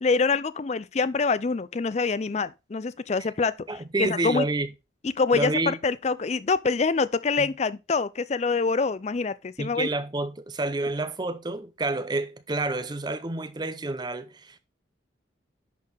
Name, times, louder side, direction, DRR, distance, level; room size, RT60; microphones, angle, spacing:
voice 1, 0.0-3.5 4.0-4.5 5.2-9.9, left 4 dB, 35° left, 0.4 m, -25 dB
voice 2, 3.7-4.7 5.3-5.8 7.4-7.5 9.6-14.6, right 2 dB, 20° right, 0.6 m, -29 dB
10.5 x 4.3 x 3.3 m
head